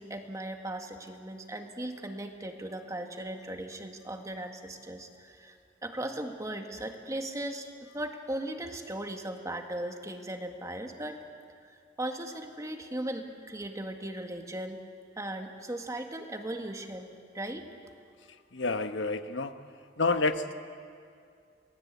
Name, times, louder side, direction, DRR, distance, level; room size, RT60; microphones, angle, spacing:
voice 1, 0.0-5.6 5.8-11.2 12.0-14.8 15.2-17.1 17.3-17.7, right 1 dB, 20° right, 4 dB, 1.8 m, -37 dB
voice 2, 18.5-19.6 20.0-20.5, left 3 dB, 80° left, 9 dB, 1.1 m, -29 dB
29.0 x 20.0 x 8.3 m, 2.3 s
head